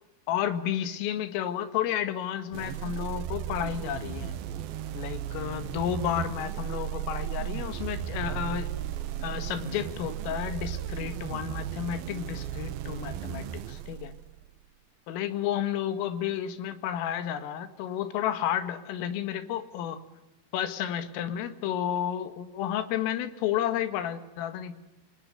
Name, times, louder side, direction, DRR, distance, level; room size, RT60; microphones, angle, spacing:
voice 1, 0.3-4.3 4.9-8.7 9.2-14.1 15.1-20.0 20.5-24.7, left 10 dB, 80° left, 10 dB, 4.3 m, -31 dB
sound 1, 2.5-14.5, right 11 dB, 85° right, 2.1 m, -35 dB
26.0 x 25.5 x 8.0 m, 0.99 s
omnidirectional pair, 5.8 m